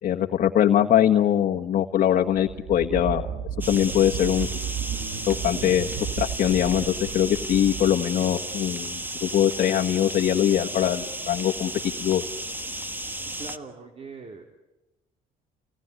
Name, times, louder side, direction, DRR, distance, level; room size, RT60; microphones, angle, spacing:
voice 1, 0.0-3.3 3.7-4.5 5.3-5.9 6.2-11.7 12.0-12.2, left 10 dB, 55° left, 2 dB, 1.6 m, -22 dB
sound 1, 2.3-8.7, right 9 dB, 75° right, 1.3 m, -34 dB
sound 2, 3.6-13.6, right 1 dB, 10° right, 1.6 m, -34 dB
voice 2, 13.4-14.4, right 3 dB, 35° right, 3 dB, 3.6 m, -41 dB
30.0 x 19.0 x 9.8 m, 1.0 s
cardioid pair, 110°, 17 cm